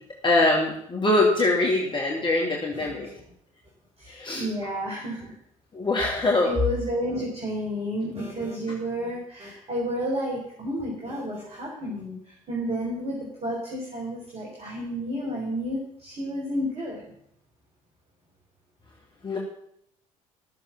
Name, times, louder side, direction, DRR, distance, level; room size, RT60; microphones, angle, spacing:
voice 1, 0.2-3.1 4.1-4.4 5.7-6.5 19.2-19.4, left 2 dB, 25° left, -2 dB, 2.4 m, -23 dB
voice 2, 4.0-5.3 6.0-17.1, equal, 35° right, -2 dB, 4.1 m, -31 dB
13.5 x 7.3 x 7.3 m, 0.72 s
figure-of-eight pair, 60°, 18 cm